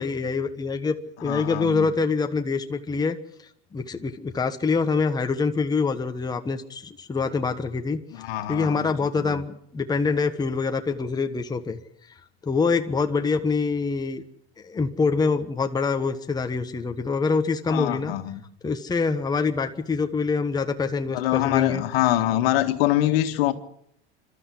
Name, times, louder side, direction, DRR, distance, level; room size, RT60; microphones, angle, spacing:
voice 1, 0.0-3.2 3.7-8.0 8.5-11.8 12.4-14.2 14.6-18.1 18.6-21.8, left 4 dB, 15° left, 1.3 m, -25 dB
voice 2, 1.2-1.9 8.1-9.3 17.7-18.4 21.1-23.5, left 14 dB, 70° left, 1.9 m, -24 dB
26.0 x 13.0 x 8.5 m
supercardioid pair, 125°, 31 cm